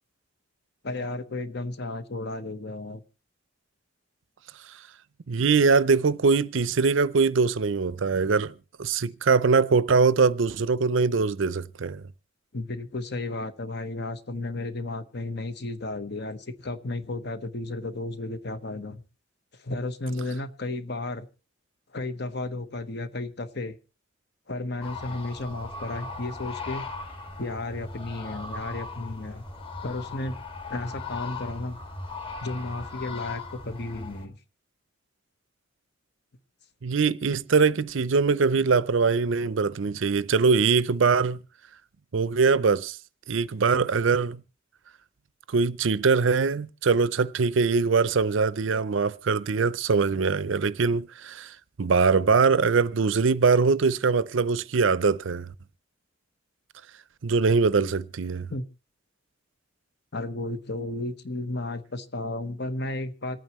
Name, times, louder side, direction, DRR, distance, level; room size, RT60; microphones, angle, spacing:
voice 1, 0.8-3.0 12.5-19.0 19.5-21.3 21.9-23.8 24.5-26.8 27.4-29.4 29.8-30.4 30.7-31.8 32.4-34.4 58.5-58.6 60.1-63.4, left 2 dB, 55° left, 1.2 m, -33 dB
voice 2, 5.3-8.5 8.8-12.0 36.8-41.4 42.1-43.0 43.3-44.4 45.5-55.5 57.2-58.5, right 4 dB, 70° right, 0.5 m, -22 dB
sound 1, 24.8-34.3, left 3 dB, 25° left, 1.8 m, -38 dB
26.5 x 9.0 x 3.1 m
head